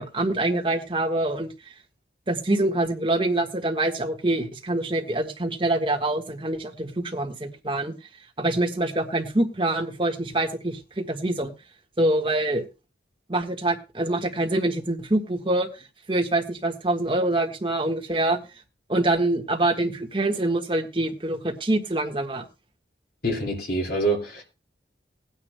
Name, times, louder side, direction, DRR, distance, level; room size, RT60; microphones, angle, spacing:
voice 1, 0.0-1.5 2.3-7.9 8.4-11.5 12.0-12.7 13.3-15.7 16.1-18.4 18.9-22.4, right 2 dB, 25° right, 2 dB, 1.5 m, -25 dB
voice 2, 23.2-24.4, right 2 dB, 55° left, 2 dB, 2.6 m, -25 dB
20.0 x 9.7 x 2.2 m, 0.30 s
head